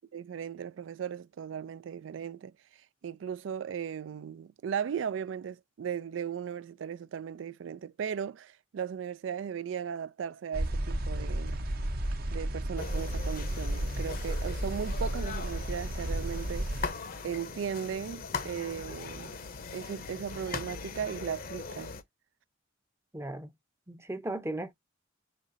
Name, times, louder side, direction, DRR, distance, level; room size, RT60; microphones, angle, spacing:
voice 1, 0.1-2.5 3.0-11.5 12.3-16.7 17.2-19.4 19.7-21.9, right 7 dB, 75° right, 0.3 m, -37 dB
sound 1, 10.5-16.9, right 1 dB, 50° right, 0.9 m, -33 dB
sound 2, 12.8-22.0, left 4 dB, 50° left, 0.7 m, -40 dB
voice 2, 23.1-23.5 23.9-24.7, right 1 dB, 15° right, 0.6 m, -36 dB
5.2 x 3.0 x 2.6 m
head